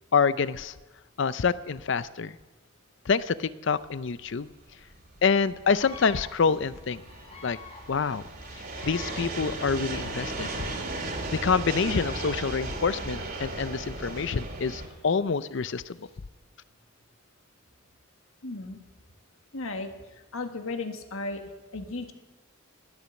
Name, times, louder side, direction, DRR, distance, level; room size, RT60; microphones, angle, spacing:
voice 1, 0.1-0.7 1.2-2.3 3.1-4.5 5.2-7.0 7.4-7.6 7.9-8.2 8.8-10.5 11.4-16.0, left 5 dB, 60° left, 16 dB, 0.5 m, -26 dB
sound 1, 3.9-14.9, right 2 dB, 45° right, 2.7 m, -36 dB
sound 2, 5.7-16.2, left 4 dB, 30° left, 1.9 m, -52 dB
voice 2, 18.4-18.8 19.5-19.9 20.3-21.4 21.7-22.1, left 3 dB, 80° left, 6 dB, 1.6 m, -34 dB
19.0 x 8.4 x 7.1 m, 1.2 s
head